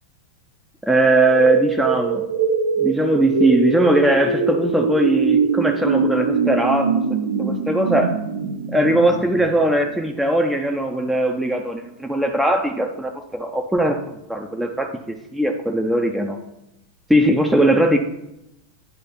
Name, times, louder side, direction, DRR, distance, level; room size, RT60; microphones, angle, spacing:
voice 1, 0.8-2.3 2.8-7.0 7.4-8.2 8.7-16.4 17.1-18.0, right 1 dB, 5° right, 2 dB, 0.6 m, -19 dB
sound 1, 1.0-9.9, right 5 dB, 65° right, 1.0 m, -23 dB
9.3 x 3.3 x 5.7 m, 0.86 s
figure-of-eight pair, 90°, 0 cm